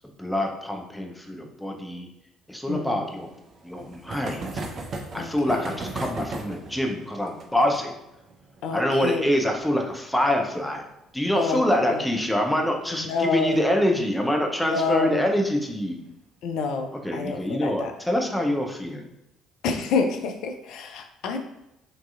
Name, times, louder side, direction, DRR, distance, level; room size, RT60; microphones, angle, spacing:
voice 1, 0.2-2.1 2.5-3.3 3.6-4.6 5.1-8.0 8.7-10.8 11.1-16.0 17.0-19.0, left 1 dB, 5° left, 2 dB, 0.6 m, -25 dB
voice 2, 2.7-3.1 5.1-5.8 8.6-9.3 11.4-12.1 13.0-13.6 14.6-15.3 16.4-17.9 19.6-21.4, left 4 dB, 65° left, 5 dB, 0.4 m, -28 dB
sound 1, 3.0-12.3 12.5-12.6 12.9-13.0 13.2-13.3 14.7-15.0 15.7-16.1, right 2 dB, 50° right, 0.5 m, -39 dB
4.6 x 2.8 x 2.4 m, 0.87 s
figure-of-eight pair, 50°, 0 cm